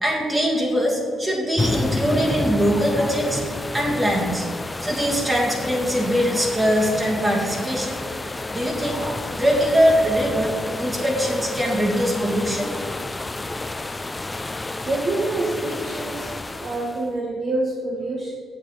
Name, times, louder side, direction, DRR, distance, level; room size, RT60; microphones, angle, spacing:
voice 1, 0.0-3.4 3.7-4.5 4.8-8.0 8.5-9.0 9.4-12.7, equal, 20° right, -2 dB, 2.3 m, -22 dB
sound 1, 1.6-17.1, left 2 dB, 20° left, 0.4 m, -30 dB
voice 2, 14.8-16.3 16.6-18.3, right 2 dB, 40° right, -2 dB, 1.1 m, -27 dB
8.2 x 7.9 x 4.0 m, 2.3 s
cardioid pair, 90°, 0 cm